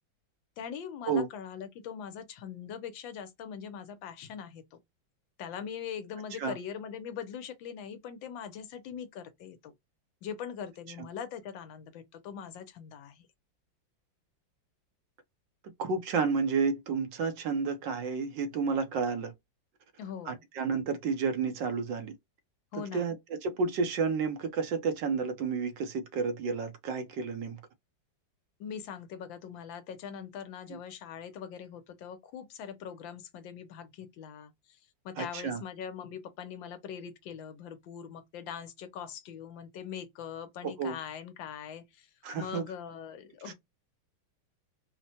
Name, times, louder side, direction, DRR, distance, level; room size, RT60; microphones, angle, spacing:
voice 1, 0.6-4.6 5.4-9.7 10.2-13.3 20.0-20.4 22.7-23.1 28.6-34.5 35.0-42.1 42.4-43.5, left 8 dB, 75° left, 1.4 m, -42 dB
voice 2, 15.8-19.3 20.3-22.1 22.7-27.6 30.7-30.8 35.2-35.6 40.6-41.0 42.2-42.7 43.4-43.5, right 5 dB, 70° right, 1.4 m, -31 dB
4.3 x 2.1 x 2.8 m
omnidirectional pair, 2.1 m